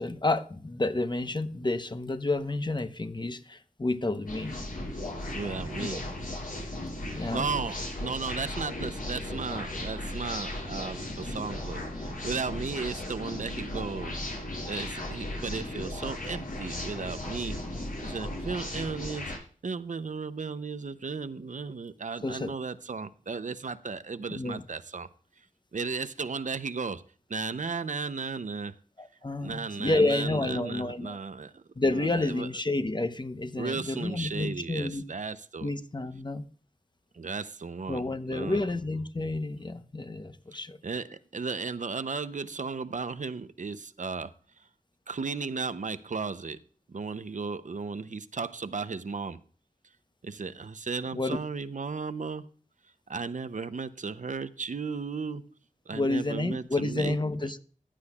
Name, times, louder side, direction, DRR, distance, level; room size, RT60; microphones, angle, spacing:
voice 1, 0.0-4.5 5.8-6.0 7.1-7.5 22.2-22.5 24.3-24.6 29.0-31.2 31.8-35.0 35.6-36.4 37.9-40.8 51.1-51.4 55.9-57.6, left 2 dB, 30° left, 0.9 m, -30 dB
sound 1, 4.3-19.4, left 1 dB, 90° left, 5.8 m, -36 dB
voice 2, 5.3-6.0 7.3-14.2 14.7-17.6 18.0-19.3 19.6-25.1 25.7-27.0 27.3-28.7 29.4-31.6 31.9-32.5 33.6-35.7 37.1-38.6 40.5-44.7 45.1-46.6 46.9-49.4 50.2-52.5 53.1-55.5 55.9-57.2, right 4 dB, 65° right, 0.6 m, -35 dB
15.0 x 10.0 x 2.4 m
wide cardioid pair, 70°, 14 cm